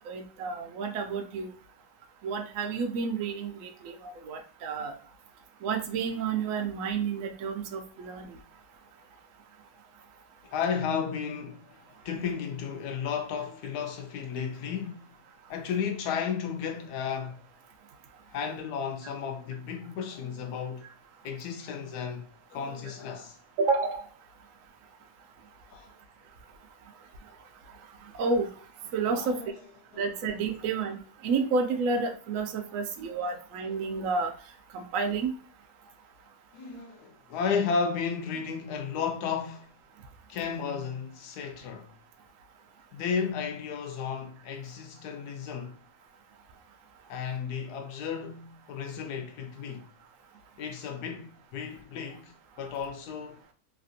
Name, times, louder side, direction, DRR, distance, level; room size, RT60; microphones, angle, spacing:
voice 1, 0.1-1.5 2.2-4.9 5.6-8.4 23.6-24.0 28.2-28.5 28.9-29.4 30.0-34.3 34.7-35.3, right 4 dB, 70° right, 0.9 m, -30 dB
voice 2, 10.5-11.8 12.0-15.1 15.5-17.4 18.3-20.9 21.2-23.4 25.7-25.9 29.1-29.6 36.5-39.7 40.3-41.9 42.9-45.8 47.1-49.9 50.6-52.3 52.6-53.4, left 6 dB, 80° left, 1.1 m, -33 dB
3.2 x 2.5 x 2.6 m
omnidirectional pair, 1.7 m